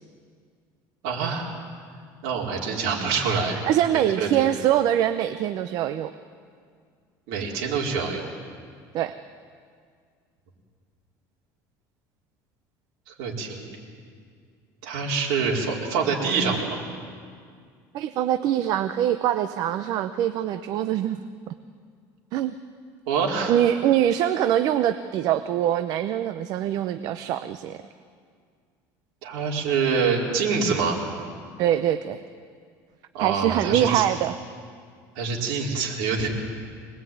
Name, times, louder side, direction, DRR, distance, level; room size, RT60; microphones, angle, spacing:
voice 1, 1.0-1.5 2.2-3.6 3.9-4.5 7.3-8.3 13.2-13.7 14.8-16.8 23.1-23.6 29.2-31.0 33.1-34.0 35.2-36.3, right 5 dB, 75° right, -2 dB, 4.6 m, -25 dB
voice 2, 3.6-6.1 8.9-9.2 17.9-21.2 22.3-22.5 23.5-27.8 31.6-32.2 33.2-34.4, right 11 dB, 50° right, 10 dB, 0.8 m, -23 dB
25.0 x 19.5 x 9.4 m, 2.1 s
cardioid pair, 155°, 8 cm